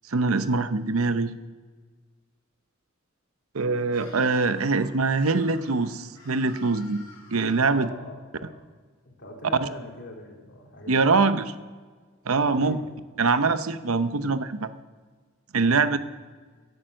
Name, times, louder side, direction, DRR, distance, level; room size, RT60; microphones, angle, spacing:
voice 1, 0.1-1.3 3.5-7.0 7.3-7.9 10.9-11.5 12.3-12.8 13.2-14.7 15.5-16.0, right 4 dB, 90° right, 11 dB, 0.8 m, -23 dB
Screaming, 3.8-7.8, left 2 dB, 20° left, 6.2 m, -50 dB
voice 2, 7.6-8.7 9.0-11.2 12.4-13.0 15.6-16.0, left 1 dB, 55° left, -1 dB, 3.4 m, -42 dB
17.0 x 11.0 x 6.4 m, 1.5 s
head